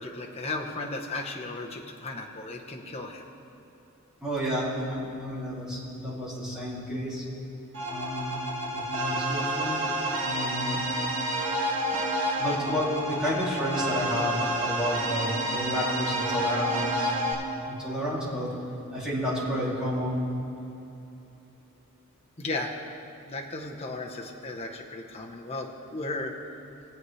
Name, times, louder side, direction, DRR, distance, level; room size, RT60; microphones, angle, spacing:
voice 1, 0.0-3.3 22.4-22.7 23.3-26.4, left 2 dB, 30° left, 0 dB, 0.9 m, -35 dB
voice 2, 4.2-7.2 7.9-8.3 8.7-9.8 10.2-10.8 12.4-17.1 17.7-18.5 18.9-20.2, equal, 5° right, -8 dB, 2.6 m, -31 dB
sound 1, 7.7-17.3, right 1 dB, 55° right, 2.1 m, -29 dB
21.5 x 8.2 x 3.2 m, 2.9 s
head